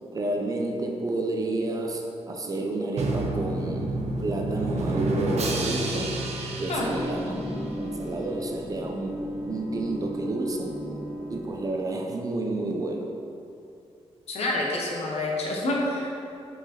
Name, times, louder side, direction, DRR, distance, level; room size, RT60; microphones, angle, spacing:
voice 1, 0.1-6.2 6.6-7.4 7.8-10.8 11.3-13.2, right 2 dB, 35° right, 1 dB, 0.5 m, -30 dB
Drum, 3.0-7.8, right 2 dB, 75° right, 0.7 m, -29 dB
sound 1, 6.7-11.9, equal, 15° left, 1.4 m, -35 dB
voice 2, 14.3-16.1, left 2 dB, 70° left, -2 dB, 1.1 m, -27 dB
5.1 x 4.8 x 4.3 m, 2.6 s
wide cardioid pair, 175°, 11 cm